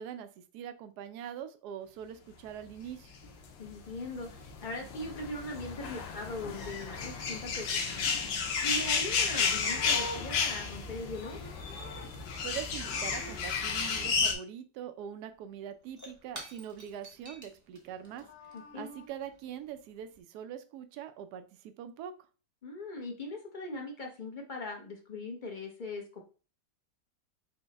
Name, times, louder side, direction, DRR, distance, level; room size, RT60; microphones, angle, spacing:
voice 1, 0.0-3.1 12.4-18.3 18.7-22.1, right 9 dB, 70° right, 9 dB, 1.0 m, -43 dB
sound 1, 3.2-14.3, left 5 dB, 90° left, 1.5 m, -32 dB
voice 2, 3.6-8.1 8.6-11.4 18.5-18.9 22.6-26.2, left 2 dB, 45° left, 1 dB, 0.6 m, -40 dB
Livestock farm animals working animals, 9.1-12.5 12.8-14.1 17.9-19.1, left 1 dB, 70° left, 1.4 m, -46 dB
Shatter / Crushing, 15.0-15.1 15.3-20.2, right 1 dB, 20° right, 0.4 m, -52 dB
5.5 x 2.2 x 4.0 m, 0.35 s
omnidirectional pair, 2.0 m